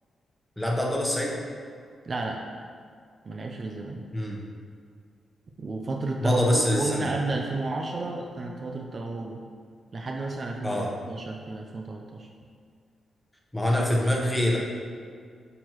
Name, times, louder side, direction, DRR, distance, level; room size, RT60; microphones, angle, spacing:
voice 1, 0.6-1.4 4.1-4.4 6.2-7.1 10.6-10.9 13.5-14.6, left 1 dB, 10° left, -2 dB, 1.1 m, -25 dB
voice 2, 2.0-2.4 3.2-4.0 5.6-9.5 9.9-12.3, right 3 dB, 40° right, 1 dB, 0.5 m, -32 dB
8.8 x 4.5 x 3.1 m, 2.1 s
cardioid pair, 105°, 0 cm